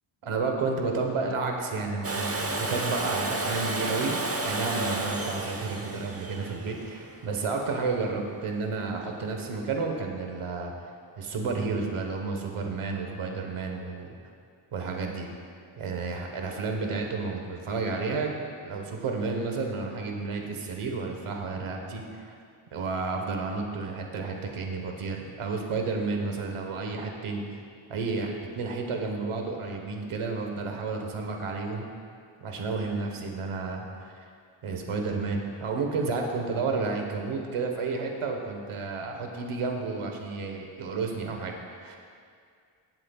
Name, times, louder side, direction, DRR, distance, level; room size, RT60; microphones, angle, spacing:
voice 1, 0.2-10.7 11.2-14.1 14.7-15.3 15.8-18.3 18.6-22.4 22.7-27.4 27.9-31.9 32.4-34.2 34.6-42.0, right 4 dB, 85° right, 2 dB, 1.3 m, -31 dB
Domestic sounds home sounds, 2.0-7.8 9.8-9.9, right 2 dB, 30° right, 0.9 m, -32 dB
17.5 x 7.6 x 2.4 m, 2.2 s
cardioid pair, 65°, 49 cm